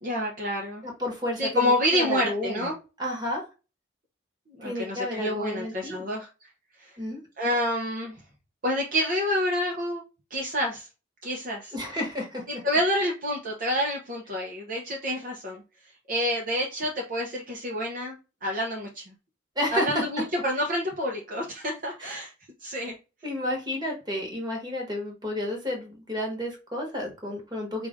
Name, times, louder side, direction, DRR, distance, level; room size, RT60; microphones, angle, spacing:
voice 1, 0.0-0.8 1.4-2.7 4.5-6.3 6.8-6.9 7.4-8.1 8.6-10.0 10.3-10.9 11.2-11.7 12.5-15.6 16.1-19.1 19.7-22.3 22.6-23.0, equal, 45° right, -1 dB, 0.9 m, -28 dB
voice 2, 0.8-2.7 3.0-3.4 4.6-6.0 7.0-7.2 11.7-12.4 19.5-20.0 22.0-22.2 23.2-27.9, left 1 dB, 20° right, 0 dB, 1.4 m, -31 dB
4.8 x 2.6 x 3.6 m, 0.30 s
head